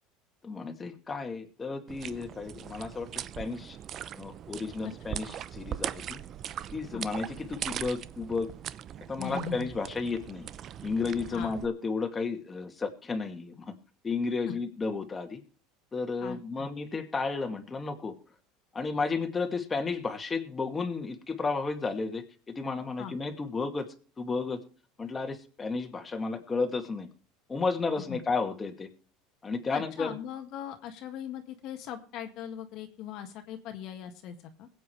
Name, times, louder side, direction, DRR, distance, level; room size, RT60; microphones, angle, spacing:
voice 1, 0.4-3.8 4.1-6.2 6.7-8.5 9.1-10.5 10.8-13.7 14.0-15.4 15.9-18.2 18.7-23.9 24.2-24.6 25.0-27.1 27.5-28.9 29.4-30.1, left 4 dB, 20° left, 4 dB, 2.2 m, -33 dB
sound 1, 1.9-11.7, right 10 dB, 40° right, 0.6 m, -40 dB
voice 2, 9.2-9.7 11.3-11.6 14.5-14.6 16.2-16.7 23.0-23.1 27.9-28.2 29.7-34.7, left 9 dB, 55° left, 5 dB, 1.7 m, -40 dB
22.0 x 8.5 x 3.3 m, 0.38 s
supercardioid pair, 125°, 0 cm